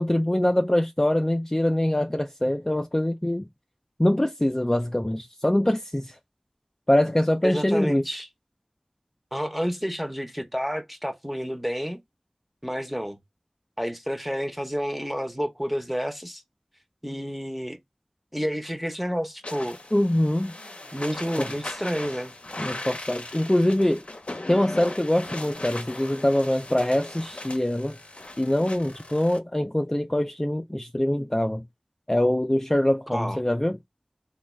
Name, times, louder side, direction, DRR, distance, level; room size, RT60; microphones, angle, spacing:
voice 1, 0.0-3.5 4.0-6.2 6.9-8.0 19.9-20.5 21.4-21.5 22.6-24.1 24.5-28.0 28.4-31.6 32.1-33.8, left 1 dB, 20° left, 0.3 m, -24 dB
voice 2, 7.4-8.3 9.3-12.0 12.6-13.2 13.8-16.4 17.0-17.8 18.3-19.8 20.9-22.3 33.1-33.4, equal, 5° right, 0.7 m, -30 dB
sound 1, 19.4-29.4, left 2 dB, 75° left, 0.5 m, -39 dB
3.2 x 2.3 x 3.1 m
wide cardioid pair, 40°, 2 cm